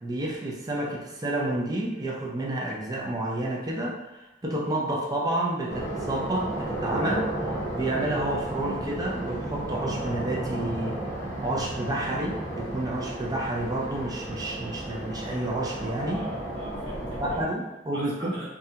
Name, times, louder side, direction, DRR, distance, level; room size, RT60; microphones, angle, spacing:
voice 1, 0.0-7.3 7.7-16.3 17.2-18.4, right 1 dB, 20° right, -3 dB, 0.4 m, -30 dB
sound 1, 5.7-17.4, right 1 dB, 15° left, 0.7 m, -33 dB
voice 2, 16.1-17.4 17.9-18.5, right 1 dB, 75° right, -7 dB, 1.1 m, -44 dB
2.4 x 2.1 x 2.7 m, 1.1 s
head